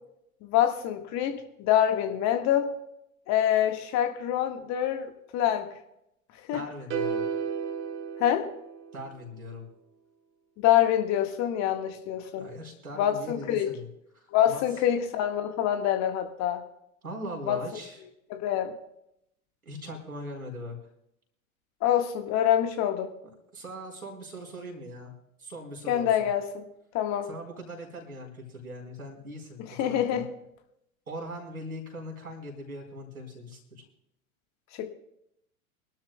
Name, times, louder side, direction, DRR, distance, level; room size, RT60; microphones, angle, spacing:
voice 1, 0.4-2.7 3.3-5.7 6.5-6.6 8.2-8.5 10.6-12.5 13.0-13.7 14.3-16.6 17.5-17.6 18.3-18.7 21.8-23.1 25.9-26.7 26.9-27.3 29.8-30.2 34.8-34.9, left 11 dB, 40° left, 6 dB, 1.7 m, -25 dB
voice 2, 6.5-7.2 8.9-9.7 12.4-13.9 14.1-14.8 17.0-18.0 19.6-20.8 23.5-25.1 25.4-26.3 27.2-30.2 31.1-33.8, equal, 85° right, 1 dB, 4.6 m, -40 dB
sound 1, 6.9-9.2, right 6 dB, 30° right, 1.6 m, -33 dB
24.5 x 12.0 x 2.3 m, 0.78 s
figure-of-eight pair, 90°, 42 cm